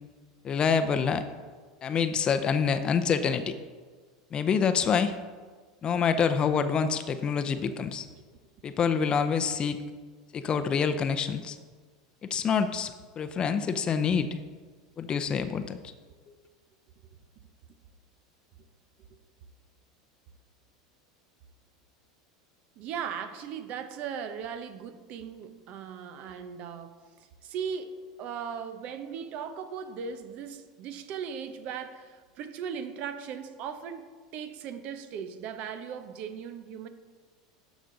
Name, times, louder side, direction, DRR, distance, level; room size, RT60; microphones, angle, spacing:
voice 1, 0.4-1.2 1.8-3.5 4.3-5.2 5.8-8.1 8.6-9.8 10.3-11.6 12.2-14.3 15.0-15.8, left 6 dB, 35° left, 9 dB, 0.6 m, -26 dB
voice 2, 22.8-36.9, right 7 dB, 55° right, 10 dB, 0.8 m, -38 dB
12.5 x 5.1 x 3.9 m, 1.5 s
hypercardioid pair, 90°, 3 cm